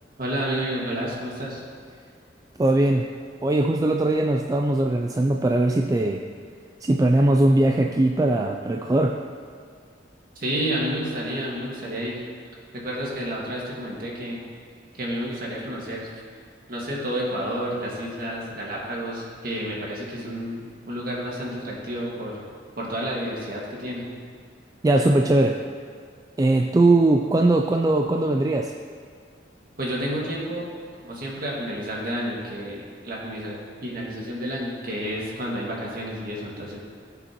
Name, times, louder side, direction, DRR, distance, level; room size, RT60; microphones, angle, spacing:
voice 1, 0.2-1.6 10.4-12.2 12.7-14.4 14.9-16.1 16.7-22.4 22.8-24.0 29.8-30.7 31.0-36.8, equal, 50° right, -4 dB, 2.0 m, -30 dB
voice 2, 2.6-3.1 3.4-6.2 6.8-9.2 24.8-25.6 26.4-28.7, right 2 dB, 20° right, 3 dB, 0.3 m, -20 dB
16.0 x 6.9 x 3.0 m, 2.1 s
head